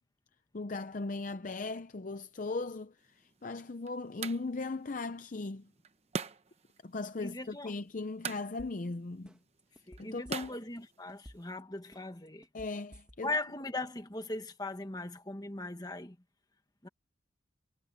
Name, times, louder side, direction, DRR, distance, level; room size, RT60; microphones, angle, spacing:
voice 1, 0.5-5.7 6.8-9.3 10.0-10.5 12.5-13.3, left 3 dB, 40° left, 0.6 m, -38 dB
sound 1, 3.0-11.5, right 5 dB, 30° right, 0.9 m, -45 dB
voice 2, 7.2-7.7 9.9-12.5 13.2-16.2 16.8-16.9, left 2 dB, 20° left, 1.5 m, -39 dB
sound 2, 8.6-8.9 9.3-10.8 11.1-11.6 11.9-13.4 13.8-13.9, equal, 5° right, 2.3 m, -53 dB
head